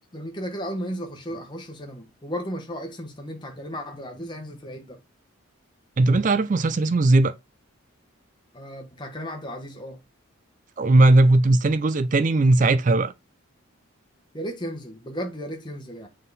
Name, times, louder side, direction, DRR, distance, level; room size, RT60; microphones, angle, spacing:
voice 1, 0.1-5.0 8.5-10.0 14.3-16.1, equal, 20° left, 1.1 m, -34 dB
voice 2, 6.0-7.3 10.8-13.1, right 2 dB, 35° right, 0.4 m, -18 dB
7.4 x 3.7 x 4.0 m
head